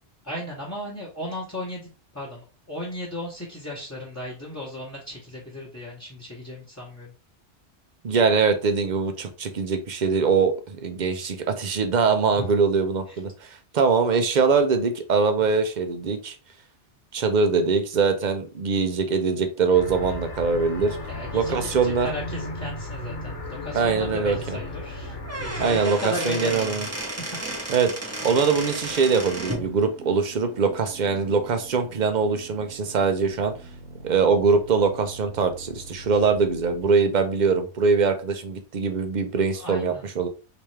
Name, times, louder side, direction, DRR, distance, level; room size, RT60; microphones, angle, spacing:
voice 1, 0.2-1.9 2.1-2.4 2.7-7.1 12.4-12.5 21.1-21.5 21.8-25.1 25.4-26.9 39.6-40.0, left 1 dB, 15° left, -6 dB, 1.0 m, -35 dB
voice 2, 8.0-16.4 17.1-21.0 21.3-22.1 23.7-24.6 25.6-26.9 27.7-27.9 28.2-33.5 34.0-40.3, right 5 dB, 50° right, 7 dB, 0.7 m, -22 dB
sound 1, 19.7-25.8, left 2 dB, 80° left, 1.1 m, -35 dB
Squeak / Wood, 25.1-29.7, right 2 dB, 15° right, 0.8 m, -33 dB
sound 2, 29.3-36.9, right 3 dB, 75° right, 0.9 m, -44 dB
3.4 x 3.0 x 3.2 m, 0.33 s
omnidirectional pair, 1.2 m